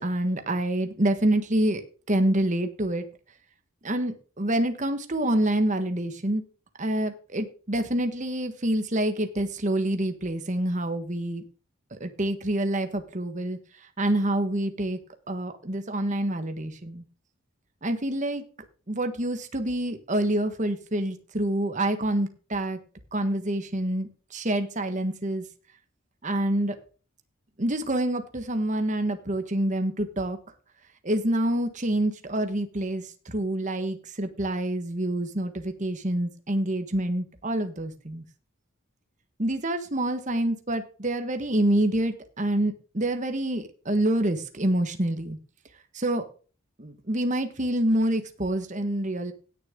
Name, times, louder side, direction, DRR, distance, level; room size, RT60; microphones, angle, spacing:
voice 1, 0.0-1.8 2.1-3.0 3.8-6.4 6.8-11.4 12.0-13.6 14.0-15.0 15.3-17.0 17.8-18.4 18.9-22.8 23.1-25.4 26.2-26.8 27.6-30.4 31.0-38.2 39.4-45.4 45.9-46.3 46.8-49.3, right 1 dB, 35° right, 7 dB, 1.4 m, -27 dB
17.0 x 6.8 x 3.7 m, 0.36 s
head